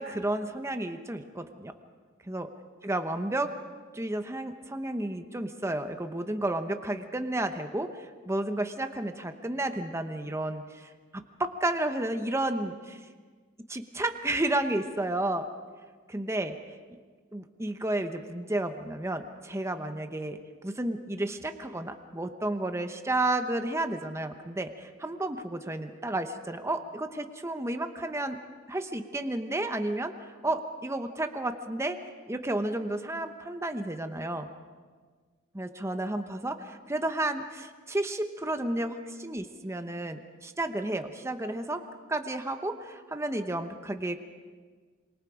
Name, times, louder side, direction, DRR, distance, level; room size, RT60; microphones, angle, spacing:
voice 1, 0.0-1.7 2.3-2.5 2.8-3.5 3.9-13.0 13.7-15.5 16.1-16.5 16.9-17.0 17.3-28.4 28.7-30.1 30.4-32.0 32.3-34.5 35.5-41.8 42.1-44.2, right 1 dB, 15° right, 7 dB, 1.0 m, -32 dB
26.0 x 23.5 x 5.0 m, 1.5 s
head